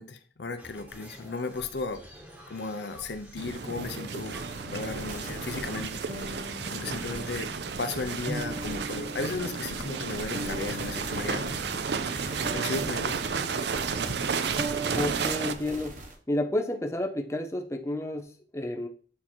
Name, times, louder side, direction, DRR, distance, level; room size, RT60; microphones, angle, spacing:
voice 1, 0.0-2.0 2.5-4.4 4.6-7.5 7.8-11.9 12.5-13.2, left 3 dB, 65° left, 9 dB, 0.6 m, -35 dB
sound 1, 0.6-8.8, equal, 5° right, 1.2 m, -50 dB
sound 2, 3.4-15.5, right 5 dB, 65° right, 0.5 m, -32 dB
sound 3, 4.4-16.1, right 1 dB, 45° right, 1.1 m, -39 dB
voice 2, 14.9-16.0 16.3-18.9, left 1 dB, 15° left, 4 dB, 0.5 m, -31 dB
8.4 x 2.8 x 4.4 m, 0.42 s
head